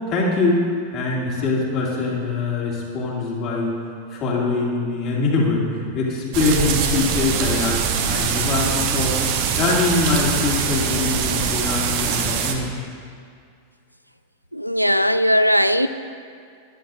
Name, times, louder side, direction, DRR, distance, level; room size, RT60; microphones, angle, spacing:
voice 1, 0.1-0.6 0.9-3.7 4.1-9.2 9.6-12.8, left 3 dB, 40° left, 2.5 m, -23 dB
sound 1, 6.3-12.5, right 7 dB, 45° right, 0.9 m, -23 dB
voice 2, 14.5-15.9, equal, 90° right, 0.3 m, -18 dB
14.5 x 10.5 x 2.7 m
figure-of-eight pair, 90°, 0 cm